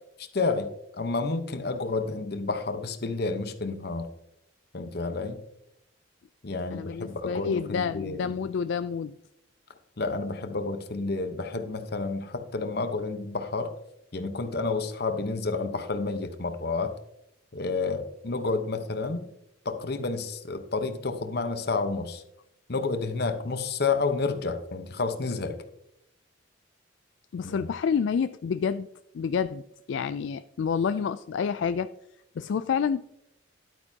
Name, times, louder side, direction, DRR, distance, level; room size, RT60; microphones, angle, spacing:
voice 1, 0.2-0.7 1.0-4.1 4.7-5.4 6.4-8.3 10.0-13.7 14.1-16.9 17.5-19.3 19.6-22.2 22.7-25.6 27.4-27.7, left 3 dB, 55° left, 8 dB, 0.9 m, -30 dB
voice 2, 6.7-9.1 27.3-28.9 29.1-29.6 29.9-31.9 32.4-33.0, left 6 dB, 70° left, 12 dB, 0.3 m, -28 dB
11.0 x 8.9 x 2.8 m, 0.81 s
head